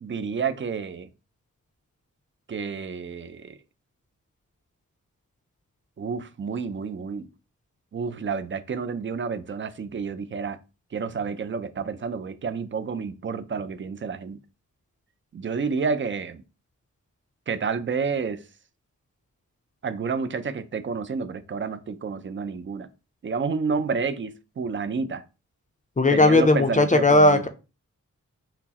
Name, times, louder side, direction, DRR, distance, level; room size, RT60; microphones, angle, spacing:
voice 1, 0.0-1.1 2.5-3.6 6.0-7.3 7.9-10.6 10.9-14.4 15.3-16.4 17.5-18.4 19.8-22.9 23.2-25.2 26.1-27.4, right 5 dB, 35° right, 0.4 m, -30 dB
voice 2, 26.0-27.5, left 2 dB, 25° left, 0.4 m, -17 dB
5.8 x 2.0 x 2.9 m
wide cardioid pair, 100°, 33 cm